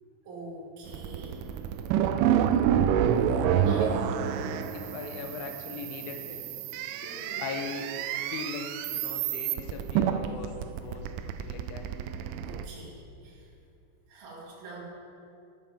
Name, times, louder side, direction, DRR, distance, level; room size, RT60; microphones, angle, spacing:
voice 1, 0.2-1.4 3.7-4.0 7.0-7.5 12.3-13.5 14.1-14.8, right 2 dB, 55° right, -5 dB, 3.5 m, -44 dB
sound 1, 0.9-12.7, right 9 dB, 85° right, 2.9 m, -28 dB
voice 2, 4.7-6.5 7.0-7.1 7.4-11.9, left 4 dB, 80° left, 4 dB, 2.4 m, -40 dB
12.5 x 10.0 x 3.6 m, 2.5 s
omnidirectional pair, 5.6 m